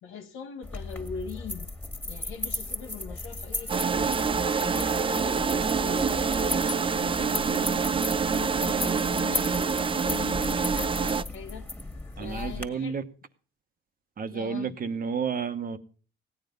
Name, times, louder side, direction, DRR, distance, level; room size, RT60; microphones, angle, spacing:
voice 1, 0.0-1.7 2.0-4.2 4.6-8.0 8.3-11.7 12.2-13.0 14.3-14.8, left 6 dB, 85° left, 1.2 m, -41 dB
sound 1, 0.6-12.7, left 2 dB, 10° left, 1.9 m, -36 dB
sound 2, 3.7-11.2, right 5 dB, 25° right, 0.5 m, -26 dB
voice 2, 12.2-13.0 14.2-15.8, right 6 dB, 45° right, 1.1 m, -31 dB
16.5 x 9.6 x 5.3 m
cardioid pair, 90°, 20 cm